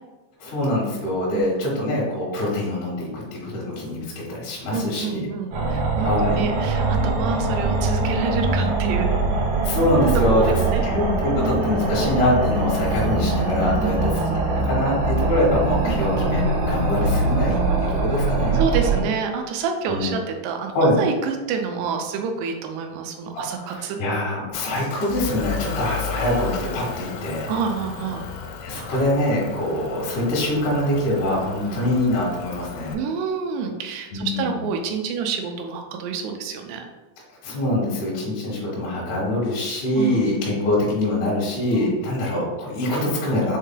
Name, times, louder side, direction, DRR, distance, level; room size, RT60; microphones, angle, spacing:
voice 1, 0.4-5.3 6.0-6.4 9.6-10.5 10.8-18.6 19.9-20.1 20.7-21.0 23.6-27.5 28.6-33.0 34.1-34.6 37.4-43.6, left 1 dB, 65° left, -5 dB, 2.2 m, -24 dB
voice 2, 4.7-9.2 10.3-10.9 13.8-14.1 15.8-16.1 18.5-24.0 27.5-28.2 31.6-31.8 32.9-36.9 40.0-40.2 41.7-42.0, right 5 dB, 80° right, 3 dB, 2.5 m, -28 dB
sound 1, 5.5-19.0, right 3 dB, 65° right, 2.1 m, -22 dB
Motor vehicle (road) / Engine, 24.5-32.9, left 6 dB, 90° left, 2.8 m, -34 dB
6.4 x 3.2 x 2.2 m, 1.2 s
omnidirectional pair, 4.9 m